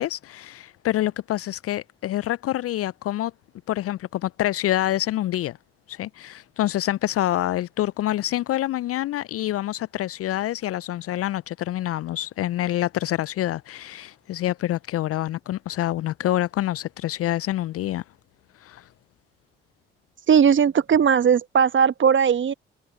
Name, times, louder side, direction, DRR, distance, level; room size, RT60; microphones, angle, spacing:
voice 1, 0.0-3.3 3.7-5.6 5.9-18.0 18.6-18.9, left 14 dB, 50° left, 0.7 m, -26 dB
voice 2, 20.3-22.5, right 7 dB, 40° right, 1.3 m, -18 dB
figure-of-eight pair, 45°, 30 cm